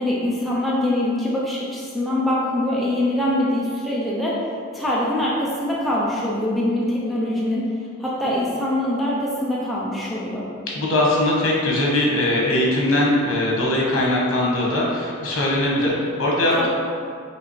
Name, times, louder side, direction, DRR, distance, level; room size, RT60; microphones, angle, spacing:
voice 1, 0.0-7.7 8.0-10.5 16.6-16.7, left 1 dB, ahead, -7 dB, 0.5 m, -23 dB
voice 2, 10.7-16.7, left 1 dB, 80° left, -4 dB, 1.1 m, -20 dB
4.9 x 3.2 x 3.2 m, 2.3 s
head